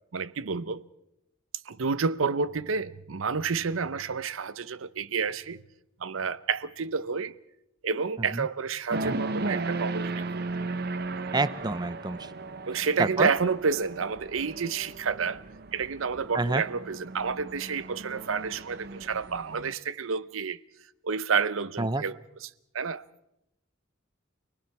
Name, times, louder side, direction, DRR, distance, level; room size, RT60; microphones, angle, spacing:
voice 1, 0.1-0.8 1.7-5.6 6.0-7.4 7.8-10.5 12.7-15.4 15.7-20.6 21.0-23.0, right 5 dB, 80° right, 0.7 m, -30 dB
sound 1, 8.9-19.7, right 3 dB, 50° right, 0.9 m, -36 dB
voice 2, 11.3-12.3 13.0-13.3 16.3-16.6 21.8-22.0, right 2 dB, 20° right, 0.7 m, -27 dB
29.0 x 19.5 x 4.7 m
head